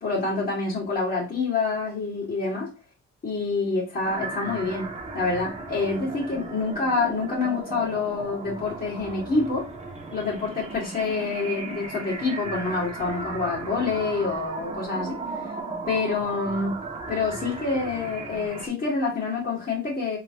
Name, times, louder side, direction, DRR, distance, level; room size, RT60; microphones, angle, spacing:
voice 1, 0.0-2.7 3.2-9.7 10.1-15.2 15.9-16.8 17.1-20.2, left 4 dB, 30° left, 1.8 m, -27 dB
sound 1, 4.0-18.7, right 3 dB, 20° right, 1.0 m, -36 dB
3.7 x 3.2 x 2.9 m
cardioid pair, 90°, 30 cm